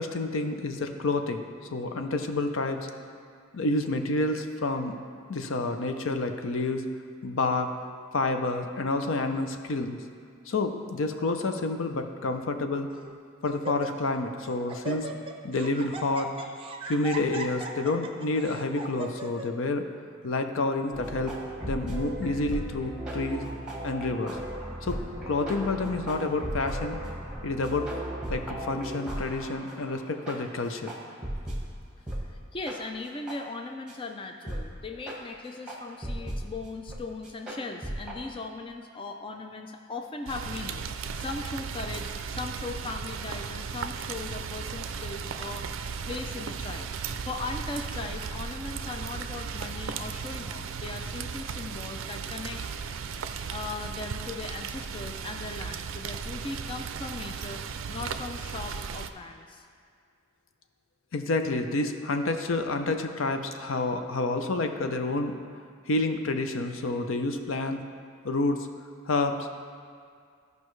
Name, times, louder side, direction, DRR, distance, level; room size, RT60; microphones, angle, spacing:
voice 1, 0.0-1.4 1.7-2.9 3.5-4.9 5.3-6.8 7.2-7.7 8.1-10.0 10.5-12.9 13.4-15.1 15.4-16.3 16.8-19.8 20.2-21.3 21.6-23.4 23.8-24.4 24.8-25.0 25.3-27.0 27.4-27.9 28.3-30.9 61.1-65.4 65.9-67.8 68.2-68.7 69.1-69.5, left 2 dB, 70° left, 6 dB, 0.6 m, -29 dB
Laughter, 11.1-11.5 12.3-12.4 12.9-13.2 13.4-14.2 14.5-19.5, right 4 dB, 25° right, 0.6 m, -39 dB
sound 1, 20.9-31.7 32.1-32.3 32.7-32.8 33.3-33.4 33.9-34.0 34.5-34.7 35.1-35.2 35.7-36.5 36.9-37.0 37.2-38.2, right 1 dB, 5° right, 1.3 m, -36 dB
voice 2, 32.2-52.6 53.2-57.6 57.9-59.7, left 3 dB, 25° left, 4 dB, 0.4 m, -39 dB
Rain, 40.3-59.1, right 6 dB, 70° right, 0.4 m, -36 dB
14.0 x 5.3 x 3.2 m, 2.2 s
head